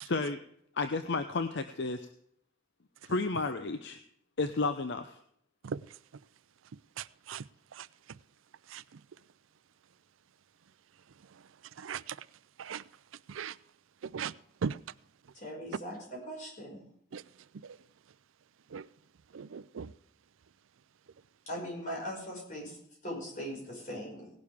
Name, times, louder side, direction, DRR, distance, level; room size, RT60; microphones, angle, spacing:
voice 1, 0.0-0.4 0.8-2.1 3.0-4.0 4.4-5.2, left 3 dB, 60° left, 0.7 m, -32 dB
voice 2, 7.0-7.4 7.8-7.9 8.7-8.8 11.8-12.2 12.6-12.8 13.3-13.5 14.1-14.3 14.6-14.8 17.1-17.2 18.7-18.8 19.3-19.9, right 6 dB, 80° right, 0.5 m, -37 dB
voice 3, 15.3-16.8 21.5-22.8 23.0-24.3, equal, 40° left, 5.6 m, -40 dB
17.5 x 11.5 x 3.6 m
head